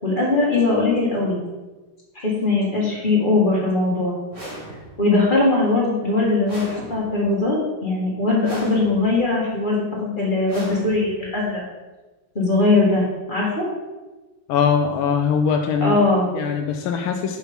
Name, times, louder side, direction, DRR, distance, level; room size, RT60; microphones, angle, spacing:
voice 1, 0.0-1.4 2.2-4.2 5.0-11.6 12.4-13.7 15.8-16.3, left 2 dB, 25° left, -5 dB, 1.8 m, -20 dB
sound 1, 4.3-5.2 6.4-7.4 8.4-9.2 10.5-11.4, right 1 dB, 15° right, 1.9 m, -38 dB
voice 2, 14.5-16.0 16.3-17.4, left 6 dB, 80° left, 3 dB, 1.4 m, -21 dB
5.8 x 5.8 x 5.3 m, 1.2 s
omnidirectional pair, 2.2 m